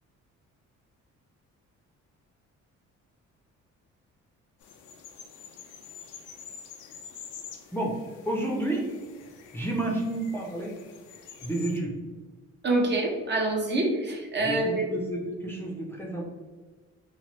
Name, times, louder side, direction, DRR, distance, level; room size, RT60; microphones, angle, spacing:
sound 1, 4.6-11.8, left 7 dB, 80° left, 0.5 m, -47 dB
voice 1, 8.3-8.9 9.5-10.8 11.4-11.9 14.4-16.3, right 2 dB, 10° left, -3 dB, 0.5 m, -30 dB
voice 2, 12.6-14.9, right 2 dB, 35° right, -1 dB, 0.6 m, -26 dB
3.0 x 2.0 x 3.0 m, 1.3 s
cardioid pair, 90°, 30 cm